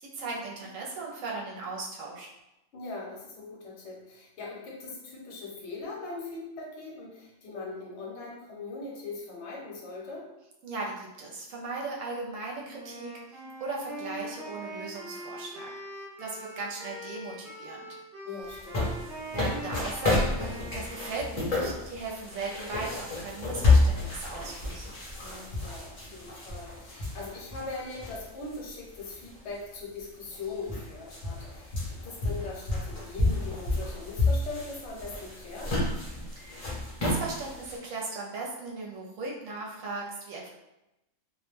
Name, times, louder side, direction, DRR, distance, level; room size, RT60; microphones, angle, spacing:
voice 1, 0.0-2.3 10.6-13.2 13.6-15.7 16.2-17.9 19.3-24.9 36.4-40.5, right 3 dB, 75° right, -2 dB, 0.9 m, -37 dB
voice 2, 2.7-10.2 18.2-18.8 25.2-35.8, left 3 dB, 60° left, -3 dB, 1.0 m, -40 dB
Wind instrument woodwind instrument, 12.7-21.5, right 1 dB, 35° right, 1.0 m, -42 dB
sound 1, 18.5-28.6 29.0-29.1 30.0-30.1 30.3-37.8, left 3 dB, 35° left, 0.7 m, -30 dB
2.4 x 2.1 x 3.1 m, 0.94 s
omnidirectional pair, 1.4 m